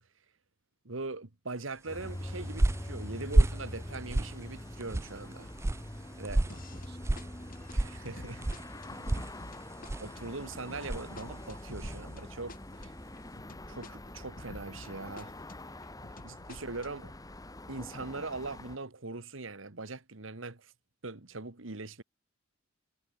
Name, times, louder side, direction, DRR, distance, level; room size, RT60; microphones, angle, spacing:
voice 1, 0.9-5.5 6.2-6.4 7.7-8.6 10.0-12.9 13.7-15.3 16.2-17.1 17.7-20.7 21.0-22.0, right 3 dB, 75° right, 1.8 m, -41 dB
sound 1, 1.9-18.8, left 1 dB, 20° left, 1.6 m, -44 dB
sound 2, 2.0-12.1, right 1 dB, 15° right, 0.3 m, -32 dB
voice 2, 5.9-7.4 8.9-9.4 16.1-16.2, right 2 dB, 55° right, 4.2 m, -59 dB
sound 3, 6.5-6.9 7.2-14.9 15.2-17.2, left 2 dB, 45° left, 1.7 m, -50 dB
head